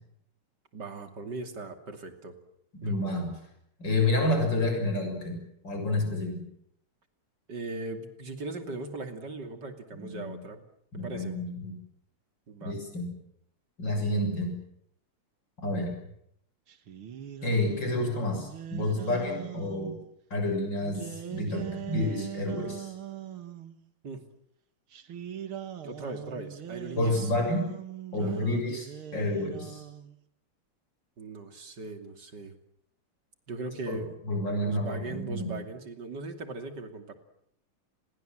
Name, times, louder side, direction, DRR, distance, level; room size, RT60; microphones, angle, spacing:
voice 1, 0.7-2.3 2.8-3.2 7.5-10.6 10.9-11.3 12.5-12.7 24.0-24.2 25.8-27.3 28.2-28.6 31.2-32.5 33.5-34.1 34.6-37.2, right 3 dB, 55° right, 7 dB, 3.3 m, -39 dB
voice 2, 2.7-3.4 3.8-6.4 10.0-10.3 10.9-11.8 12.6-13.1 13.8-14.6 15.6-15.9 17.4-20.0 20.3-22.9 27.0-27.7 28.1-29.8 33.9-34.0 34.2-35.5, left 1 dB, 55° left, 4 dB, 7.6 m, -29 dB
sound 1, 16.7-20.0 20.8-23.8 24.9-30.1, right 10 dB, 75° right, 2.4 m, -41 dB
29.5 x 22.0 x 7.8 m, 0.72 s
omnidirectional pair, 2.3 m